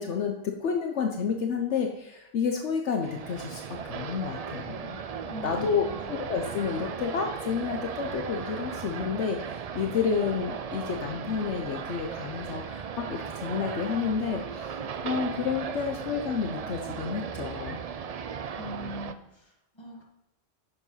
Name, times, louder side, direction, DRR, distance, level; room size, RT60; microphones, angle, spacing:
voice 1, 0.0-5.0 5.4-17.8, left 6 dB, 70° left, 3 dB, 1.0 m, -30 dB
sound 1, 3.0-19.1, right 7 dB, 75° right, 0.3 m, -37 dB
voice 2, 5.3-6.2 18.5-20.0, left 2 dB, 20° left, -1 dB, 1.8 m, -41 dB
7.1 x 6.9 x 5.6 m, 0.92 s
omnidirectional pair, 1.3 m